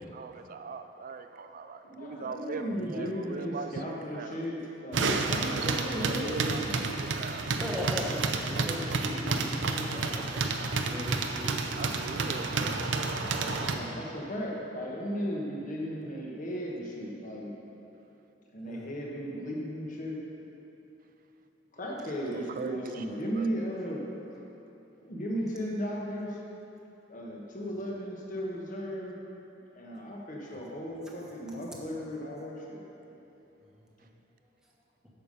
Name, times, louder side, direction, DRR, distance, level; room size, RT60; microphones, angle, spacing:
voice 1, 0.1-4.4 5.6-7.5 11.8-12.8 21.8-23.5, right 4 dB, 50° right, 8 dB, 0.4 m, -40 dB
voice 2, 1.8-6.8 8.3-8.7 9.1-9.8 13.7-17.5 18.5-20.2 21.7-24.0 25.0-26.4 27.1-29.1 29.7-33.1, equal, 45° left, -2 dB, 1.4 m, -36 dB
voice 3, 2.7-3.0 7.6-8.2 8.5-10.2 10.9-12.8 18.6-19.3 27.6-27.9, equal, 5° right, -4 dB, 1.2 m, -40 dB
sound 1, 4.9-13.8, right 3 dB, 90° right, 0.7 m, -30 dB
9.0 x 6.8 x 5.3 m, 3.0 s
head